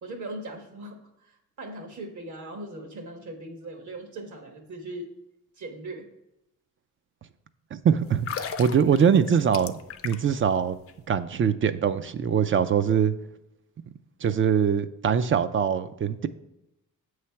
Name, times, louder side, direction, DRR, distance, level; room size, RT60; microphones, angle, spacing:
voice 1, 0.0-5.1 5.6-6.1, right 2 dB, 55° right, 3 dB, 1.4 m, -39 dB
voice 2, 7.7-10.8 11.1-13.1 14.2-16.3, right 7 dB, 40° right, 12 dB, 0.4 m, -23 dB
sound 1, 8.1-10.4 10.7-10.9, left 7 dB, 45° left, 0.5 m, -36 dB
8.1 x 3.2 x 5.7 m, 0.87 s
cardioid pair, 110°, 34 cm